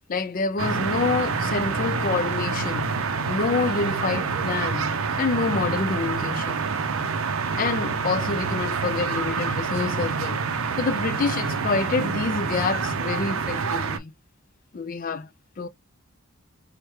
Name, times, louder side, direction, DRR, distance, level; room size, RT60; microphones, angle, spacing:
voice 1, 0.1-6.7 7.6-10.4 10.8-14.1 14.7-15.3 15.6-15.7, left 4 dB, 40° left, 0.4 m, -27 dB
sound 1, 0.6-14.0, right 5 dB, 70° right, 0.5 m, -27 dB
4.7 x 2.2 x 3.1 m
head